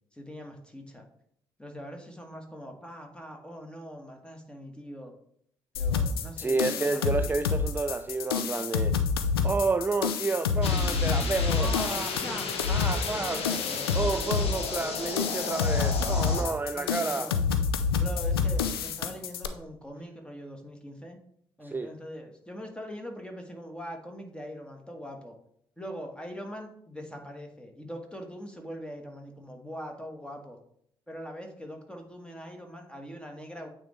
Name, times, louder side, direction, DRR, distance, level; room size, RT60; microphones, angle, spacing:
voice 1, 0.1-1.1 1.6-5.1 5.7-7.2 11.6-12.5 13.1-13.8 16.7-17.4 18.0-21.2 21.6-25.3 25.8-30.6 31.1-33.7, equal, 10° left, 3 dB, 1.5 m, -42 dB
sound 1, 5.7-19.5, left 6 dB, 80° left, 0.4 m, -28 dB
voice 2, 6.4-9.0 9.4-12.1 12.7-13.4 13.9-17.4 21.6-21.9, right 4 dB, 15° right, 10 dB, 0.3 m, -30 dB
sound 2, 10.6-16.4, left 4 dB, 55° left, 1.1 m, -34 dB
8.8 x 3.7 x 3.3 m, 0.69 s
figure-of-eight pair, 40°, 12 cm